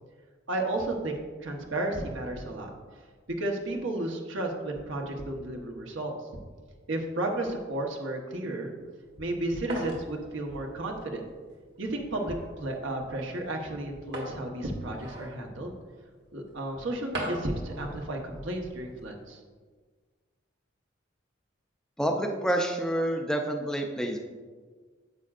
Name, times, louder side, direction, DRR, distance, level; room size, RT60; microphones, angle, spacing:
voice 1, 0.5-2.7 3.4-6.1 6.9-8.7 9.2-11.2 11.8-15.7 16.3-19.4, right 1 dB, 75° right, 2 dB, 1.1 m, -33 dB
sound 1, 8.8-19.2, right 1 dB, 55° right, 1.5 m, -43 dB
voice 2, 22.0-24.2, right 1 dB, 5° left, 3 dB, 0.4 m, -28 dB
9.5 x 7.3 x 2.5 m, 1.5 s
head